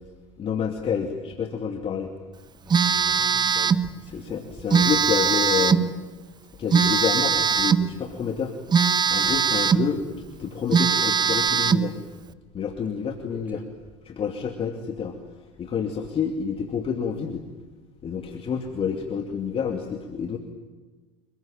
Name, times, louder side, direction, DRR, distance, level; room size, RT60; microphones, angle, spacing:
voice 1, 0.4-2.1 4.1-5.9 6.6-8.5 9.1-12.0 12.5-13.6 14.1-15.2 15.6-17.4 18.0-20.4, left 7 dB, 40° left, 4 dB, 2.6 m, -28 dB
voice 2, 2.6-4.4 9.3-9.4 13.3-13.6, right 1 dB, 10° right, 8 dB, 5.3 m, -45 dB
Telephone, 2.7-3.9 4.7-5.9 6.7-7.9 8.7-9.9 10.3-10.4 10.7-11.9, right 6 dB, 30° right, 1.1 m, -21 dB
29.0 x 21.0 x 9.0 m, 1.3 s
hypercardioid pair, 80°, 15 cm